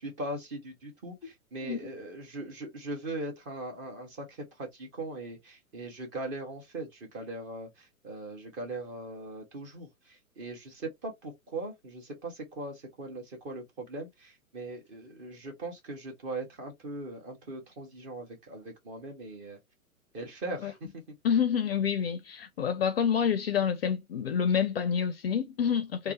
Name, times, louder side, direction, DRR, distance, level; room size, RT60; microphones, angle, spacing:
voice 1, 0.0-19.6 20.1-21.1 26.0-26.1, right 2 dB, 25° right, 1.4 m, -40 dB
voice 2, 21.2-26.1, left 7 dB, 45° left, 0.4 m, -28 dB
3.2 x 2.2 x 2.9 m
figure-of-eight pair, 110°, 42 cm